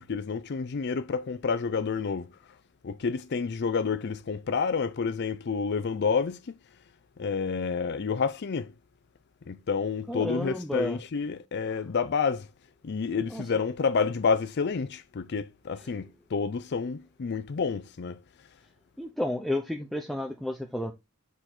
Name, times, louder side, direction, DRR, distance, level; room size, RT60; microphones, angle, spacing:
voice 1, 0.0-2.3 2.8-6.5 7.2-8.7 9.5-12.5 12.8-18.2, left 5 dB, 50° left, 0.5 m, -29 dB
voice 2, 10.1-11.0 13.3-13.4 19.0-20.9, left 1 dB, ahead, 0.6 m, -31 dB
6.9 x 4.0 x 4.3 m
head